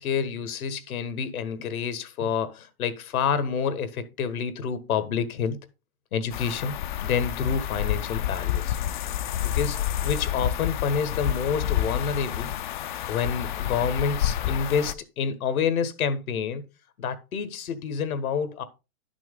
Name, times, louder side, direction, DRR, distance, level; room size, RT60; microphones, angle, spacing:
voice 1, 0.0-5.6 6.1-6.8 7.0-8.8 9.4-12.5 13.1-16.6 17.0-18.6, left 6 dB, 75° left, 1.6 m, -28 dB
sound 1, 6.3-14.9, left 11 dB, 35° left, 0.4 m, -29 dB
11.0 x 6.1 x 3.8 m
hypercardioid pair, 140°, 44 cm